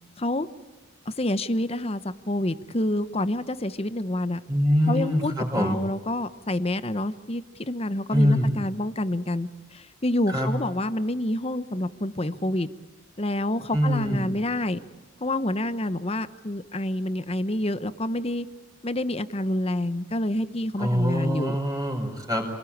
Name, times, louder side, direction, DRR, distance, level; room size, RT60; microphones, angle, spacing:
voice 1, 0.2-0.5 1.1-4.4 4.9-12.7 13.2-14.8 15.2-18.5 18.8-21.6, left 1 dB, 30° left, 13 dB, 0.9 m, -28 dB
voice 2, 4.5-5.8 8.1-8.5 10.3-10.5 13.7-14.3 20.8-22.5, equal, 15° right, 2 dB, 4.8 m, -24 dB
27.0 x 20.0 x 8.7 m, 1.3 s
head